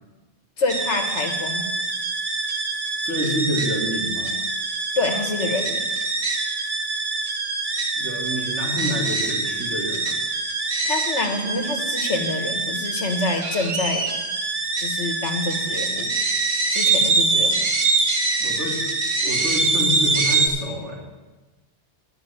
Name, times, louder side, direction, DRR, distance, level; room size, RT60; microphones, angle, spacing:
voice 1, 0.6-1.7 4.9-5.9 10.8-14.1 14.8-16.1 16.7-17.7, left 2 dB, 75° left, 4 dB, 1.7 m, -26 dB
sound 1, 0.7-20.5, right 3 dB, 45° right, 1.4 m, -24 dB
voice 2, 3.0-4.3 8.0-10.2 18.4-18.8 19.2-21.0, equal, 75° right, -3 dB, 3.2 m, -28 dB
11.5 x 5.9 x 9.0 m, 1.2 s
omnidirectional pair, 1.2 m